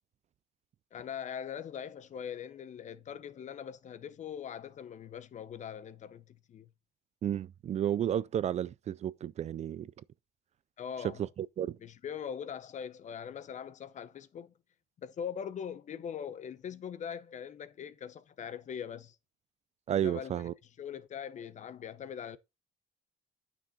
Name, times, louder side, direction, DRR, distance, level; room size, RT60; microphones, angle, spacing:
voice 1, 0.9-6.7 10.8-11.2 11.8-14.5 15.0-19.2 19.9-20.4 20.8-22.4, left 8 dB, 45° left, 0.8 m, -41 dB
voice 2, 7.2-9.9 11.2-11.8 19.9-20.5, right 10 dB, 40° right, 0.4 m, -32 dB
9.3 x 6.1 x 4.0 m
cardioid pair, 110°, 17 cm